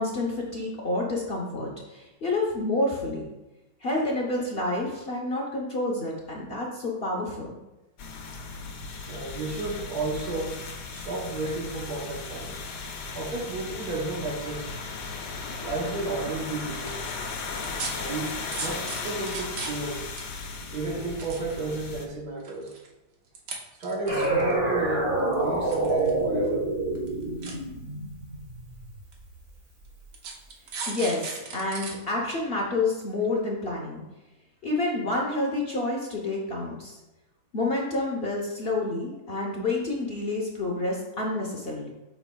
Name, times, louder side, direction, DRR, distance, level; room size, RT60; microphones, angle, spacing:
voice 1, 0.0-3.3 3.8-7.6 30.9-34.0 34.6-37.0 37.5-41.9, left 2 dB, 45° left, -2 dB, 0.9 m, -29 dB
sound 1, 8.0-22.1, left 4 dB, 80° left, 1.4 m, -36 dB
voice 2, 9.1-10.6 10.9-12.5 13.1-14.7 15.6-16.9 18.0-20.1 20.7-22.7 23.8-26.7, right 3 dB, 65° right, 0 dB, 1.5 m, -32 dB
sound 2, 16.9-17.0 17.6-17.9 18.5-19.9 20.2-20.3 21.0-21.9 22.4-22.9 23.4-23.5 23.8-24.5 25.3-26.2 26.4-26.5 27.0-27.1 27.4-27.5 28.4-28.5 29.1-29.2 30.1-31.9 32.3-32.4, right 4 dB, 90° right, 1.7 m, -36 dB
sound 3, 24.1-29.4, right 2 dB, 35° right, 1.8 m, -27 dB
8.5 x 6.1 x 2.3 m, 1.0 s
omnidirectional pair, 1.8 m